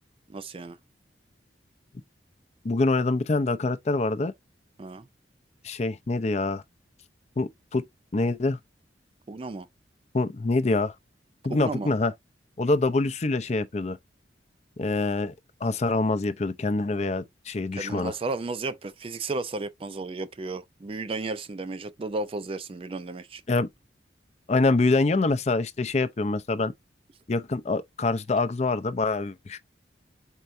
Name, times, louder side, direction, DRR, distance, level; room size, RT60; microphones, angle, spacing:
voice 1, 0.3-0.8 4.8-5.1 9.3-9.7 11.5-11.9 17.7-23.4, right 3 dB, 30° right, 0.4 m, -33 dB
voice 2, 2.6-4.3 5.6-6.6 7.4-7.8 8.1-8.6 10.1-10.9 11.4-12.1 12.6-14.0 14.8-15.3 15.6-18.1 23.5-23.7 24.5-26.7 27.3-29.6, left 3 dB, 35° left, 0.5 m, -25 dB
4.5 x 4.3 x 2.5 m
head